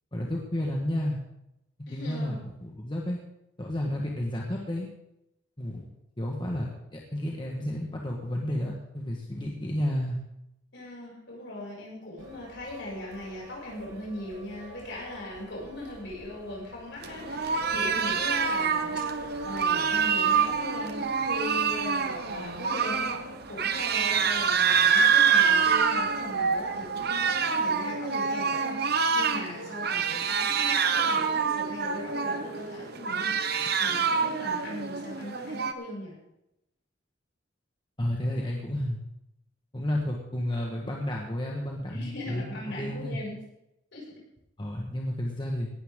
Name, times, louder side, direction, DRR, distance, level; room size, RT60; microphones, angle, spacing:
voice 1, 0.1-1.2 1.9-3.2 3.6-4.9 5.6-5.9 6.2-10.2 38.0-39.0 39.7-43.2 44.6-45.7, left 1 dB, 25° left, -1 dB, 1.5 m, -31 dB
voice 2, 1.9-2.4 10.7-33.3 33.8-36.1 41.9-43.4 43.9-44.0, left 1 dB, 60° left, -4 dB, 6.8 m, -39 dB
sound 1, 12.2-27.2, right 1 dB, 75° right, 4.8 m, -49 dB
sound 2, 17.0-35.7, right 6 dB, 50° right, 1.0 m, -26 dB
18.0 x 12.5 x 3.8 m, 0.86 s
head